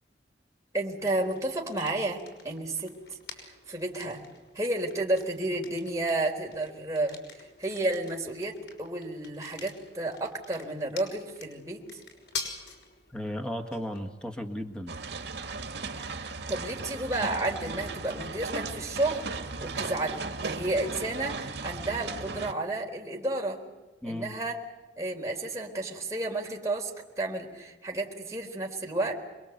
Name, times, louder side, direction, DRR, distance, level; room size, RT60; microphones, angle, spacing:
voice 1, 0.7-2.2 2.4-4.2 4.5-12.0 15.9-16.2 16.5-19.3 19.6-23.6 24.0-24.6 25.0-29.1, right 2 dB, 15° right, 0 dB, 3.9 m, -32 dB
sound 1, 1.0-18.7, left 5 dB, 60° left, 6.1 m, -47 dB
voice 2, 13.1-14.9 24.0-24.3, equal, 5° left, 4 dB, 1.6 m, -35 dB
sound 2, 14.9-22.5, right 3 dB, 70° right, 2.2 m, -36 dB
27.0 x 22.5 x 8.1 m, 1.2 s
head